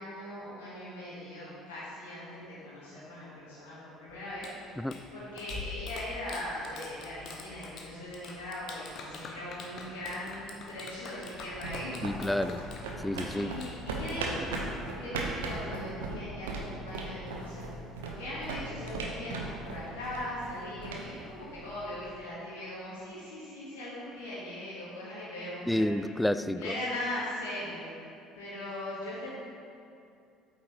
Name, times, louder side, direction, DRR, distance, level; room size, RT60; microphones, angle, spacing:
voice 1, 0.0-4.5 5.1-12.0 13.3-14.7 14.9-26.1 26.5-27.9 28.3-29.3, left 1 dB, 70° left, -9 dB, 1.5 m, -40 dB
Clapping, 4.1-15.2, left 3 dB, 50° left, 1.0 m, -47 dB
Bass drum, 5.5-7.2, left 4 dB, 85° left, 1.6 m, -43 dB
sound 1, 11.3-22.0, right 2 dB, 70° right, 0.9 m, -38 dB
voice 2, 12.0-12.6 13.0-13.5 25.7-26.7, left 1 dB, 5° left, 12 dB, 0.3 m, -29 dB
8.7 x 7.6 x 3.1 m, 2.5 s
figure-of-eight pair, 55°, 0 cm